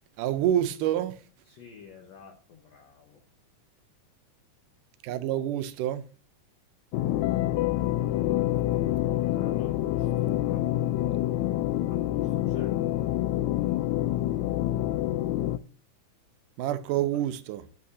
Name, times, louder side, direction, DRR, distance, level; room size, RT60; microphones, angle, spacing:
voice 1, 0.2-1.2 5.0-6.0 16.6-17.6, right 11 dB, 90° right, 2.3 m, -27 dB
voice 2, 1.4-3.2 8.7-10.6 11.9-12.7 16.9-17.1, left 6 dB, 65° left, 2.1 m, -48 dB
sound 1, 6.9-15.6, left 14 dB, 80° left, 1.7 m, -27 dB
11.0 x 8.6 x 2.7 m
omnidirectional pair, 3.6 m